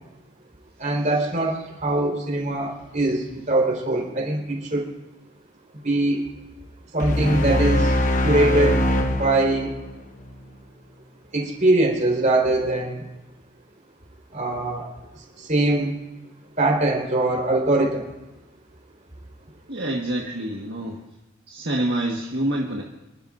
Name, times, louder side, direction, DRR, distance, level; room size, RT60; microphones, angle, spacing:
voice 1, 0.8-4.9 5.8-6.2 6.9-7.9 8.2-8.8 9.1-9.7 11.3-13.0 14.3-14.9 15.4-15.9 16.6-18.1, right 2 dB, 35° right, -1 dB, 4.3 m, -22 dB
sound 1, 7.0-10.3, left 1 dB, 35° left, 1.1 m, -22 dB
voice 2, 19.7-21.0 21.5-22.8, right 1 dB, 55° right, -1 dB, 1.6 m, -26 dB
28.5 x 12.5 x 2.6 m, 1.0 s
head